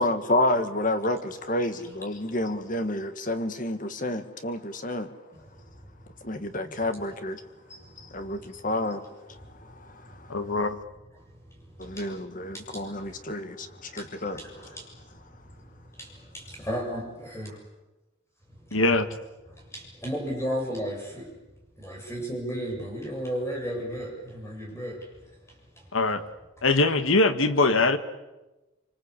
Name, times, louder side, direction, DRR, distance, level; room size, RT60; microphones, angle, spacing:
voice 1, 0.0-5.1 6.2-7.4 8.0-10.3 11.8-14.4, left 1 dB, 40° left, 1.9 m, -30 dB
voice 2, 5.3-5.6 7.2-7.3 7.6-8.1 11.4-12.1 12.5-13.2 14.0-15.0 15.9-17.5 18.7-18.8 19.5-21.3 21.8-25.1 25.5-25.8, equal, 15° left, 7.2 m, -35 dB
voice 3, 10.3-10.8 18.7-19.1 25.9-26.2 26.6-28.0, left 2 dB, 80° left, 1.8 m, -22 dB
25.5 x 25.0 x 8.4 m
head